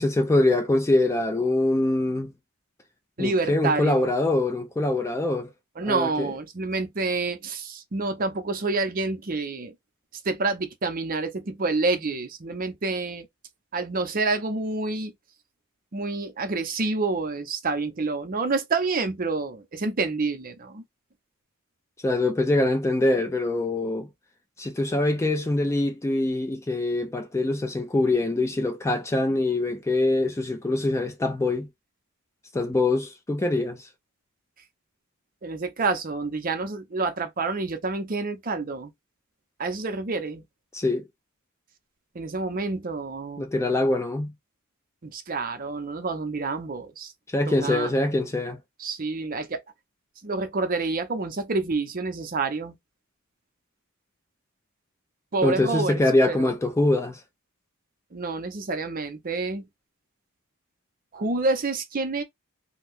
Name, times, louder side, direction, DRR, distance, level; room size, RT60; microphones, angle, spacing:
voice 1, 0.0-2.3 3.2-5.5 5.9-6.3 22.0-24.1 24.6-31.7 32.5-33.9 40.7-41.0 43.4-44.3 47.3-48.6 55.4-57.2, left 2 dB, 15° left, 0.3 m, -24 dB
voice 2, 3.2-4.1 5.8-9.7 10.2-13.3 13.7-15.1 15.9-20.8 35.4-38.9 39.6-40.4 42.1-43.5 45.0-47.1 47.5-47.9 48.8-49.6 50.2-52.8 55.3-56.0 56.3-56.5 58.1-59.7 61.1-62.2, right 3 dB, 40° right, 0.6 m, -28 dB
2.6 x 2.2 x 3.4 m
head